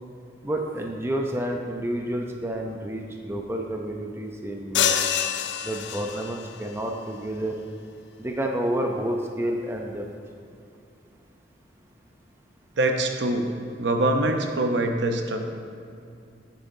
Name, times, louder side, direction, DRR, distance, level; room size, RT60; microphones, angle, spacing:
voice 1, 0.4-5.1 5.6-7.6 8.2-10.1, right 1 dB, 15° right, 2 dB, 0.5 m, -29 dB
sound 1, 4.7-6.5, left 8 dB, 65° left, 0.4 m, -26 dB
voice 2, 12.8-13.5 13.8-15.5, right 2 dB, 65° right, 4 dB, 0.7 m, -24 dB
9.1 x 8.4 x 2.7 m, 2.5 s
head